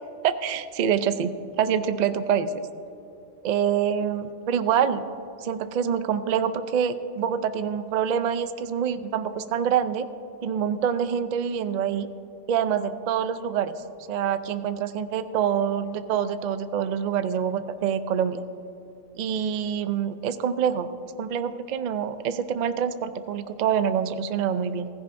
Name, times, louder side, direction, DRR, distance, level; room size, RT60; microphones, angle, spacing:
voice 1, 0.2-2.5 3.4-5.0 5.4-10.1 10.4-12.1 12.5-13.8 14.1-18.4 19.2-20.9 21.2-24.9, right 8 dB, 65° right, 11 dB, 0.4 m, -26 dB
16.5 x 15.0 x 2.6 m, 2.9 s
omnidirectional pair, 1.3 m